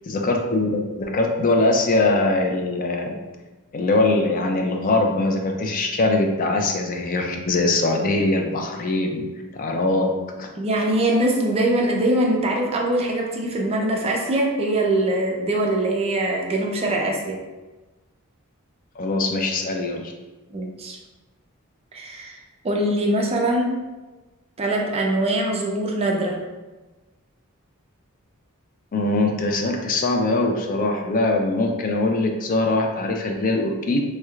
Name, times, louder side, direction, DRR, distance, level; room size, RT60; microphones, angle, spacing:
voice 1, 0.1-3.1 3.7-9.2 9.5-10.1 10.4-10.5 19.0-20.1 28.9-34.0, left 2 dB, 40° left, 2 dB, 0.4 m, -22 dB
voice 2, 10.5-17.4 20.5-21.0 21.9-23.8 24.6-26.4, right 1 dB, 25° right, 0 dB, 0.4 m, -23 dB
3.2 x 3.1 x 2.3 m, 1.2 s
head